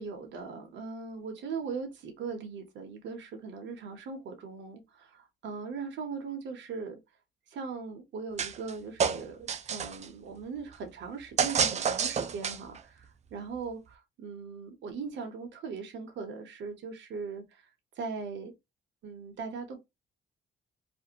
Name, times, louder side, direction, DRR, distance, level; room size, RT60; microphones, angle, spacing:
voice 1, 0.0-7.0 7.5-17.7 18.0-18.5 19.0-19.8, right 5 dB, 65° right, 0.8 m, -39 dB
sound 1, 8.4-8.7 9.0-10.1 11.4-12.8, right 6 dB, 35° right, 0.4 m, -29 dB
2.5 x 2.1 x 2.8 m
cardioid pair, 90°, 20 cm